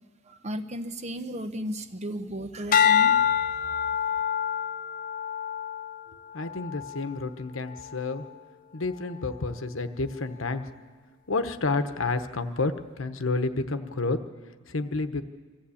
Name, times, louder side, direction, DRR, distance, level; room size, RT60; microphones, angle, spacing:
voice 1, 0.3-3.4, equal, 35° right, 10 dB, 0.8 m, -35 dB
sound 1, 2.7-7.2 7.7-8.1, left 8 dB, 40° left, 0.5 m, -26 dB
voice 2, 6.1-8.2 8.7-10.7 11.3-14.2 14.7-15.2, left 3 dB, 75° left, 9 dB, 1.1 m, -30 dB
24.0 x 14.5 x 8.5 m, 1.5 s
head